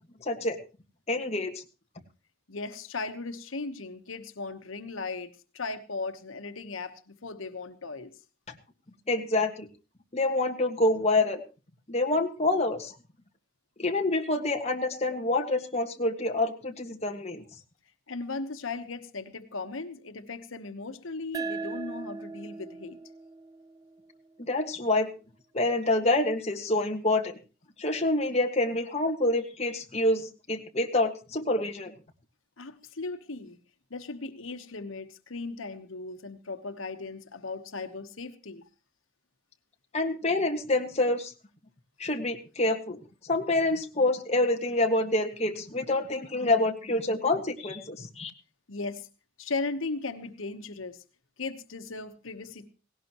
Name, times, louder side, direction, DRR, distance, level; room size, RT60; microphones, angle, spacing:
voice 1, 0.2-0.6 1.1-1.5 9.1-9.7 10.1-11.4 11.9-13.0 13.8-17.4 24.4-25.1 25.5-27.4 27.8-31.9 39.9-41.3 42.0-43.0 43.2-48.3, left 2 dB, 30° left, 3 dB, 1.7 m, -27 dB
voice 2, 2.5-8.1 18.1-23.0 32.6-33.6 33.9-38.6 48.7-49.1 49.4-51.0 51.4-52.7, left 3 dB, 90° left, 8 dB, 1.2 m, -37 dB
sound 1, 21.3-24.5, right 3 dB, 20° right, 0.6 m, -39 dB
17.5 x 17.5 x 3.0 m, 0.33 s
head